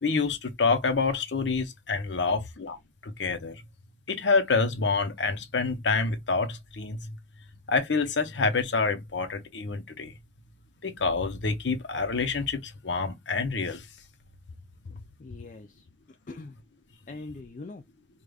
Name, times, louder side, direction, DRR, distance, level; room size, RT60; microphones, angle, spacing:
voice 1, 0.0-2.8 3.0-3.6 4.1-7.2 7.7-10.1 10.8-13.9, left 4 dB, 90° left, 0.8 m, -27 dB
voice 2, 14.8-15.8 16.3-16.5 17.1-17.8, left 3 dB, 45° left, 0.4 m, -42 dB
4.9 x 2.4 x 2.3 m
head